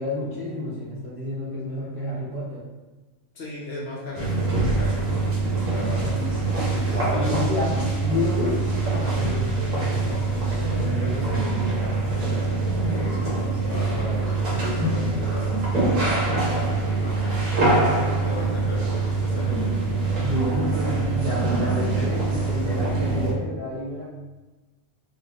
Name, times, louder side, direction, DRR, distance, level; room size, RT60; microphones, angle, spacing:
voice 1, 0.0-2.7 6.1-6.3 6.7-8.7 20.2-24.0, left 1 dB, 45° right, -10 dB, 0.4 m, -29 dB
voice 2, 3.3-5.4 5.7-6.2 6.7-7.4 8.8-16.0 16.4-19.6, left 1 dB, 60° left, -4 dB, 0.8 m, -37 dB
sound 1, 4.2-23.3, right 3 dB, 80° right, 1.1 m, -24 dB
2.6 x 2.1 x 2.8 m, 1.2 s
omnidirectional pair, 1.3 m